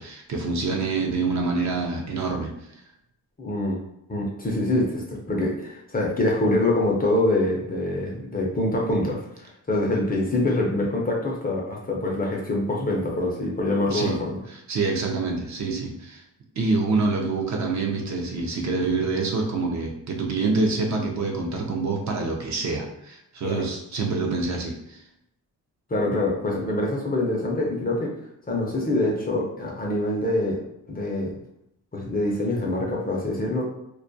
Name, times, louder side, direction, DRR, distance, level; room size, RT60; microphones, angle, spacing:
voice 1, 0.0-2.5 13.9-14.2 14.5-16.2 16.6-25.0, right 3 dB, 45° right, 1 dB, 0.5 m, -26 dB
voice 2, 3.4-3.8 4.1-14.4 23.4-23.7 25.9-28.1 28.5-30.6 30.9-31.3 31.9-33.6, left 1 dB, 25° left, -2 dB, 0.4 m, -25 dB
2.2 x 2.1 x 2.5 m, 0.81 s
cardioid pair, 115°, 38 cm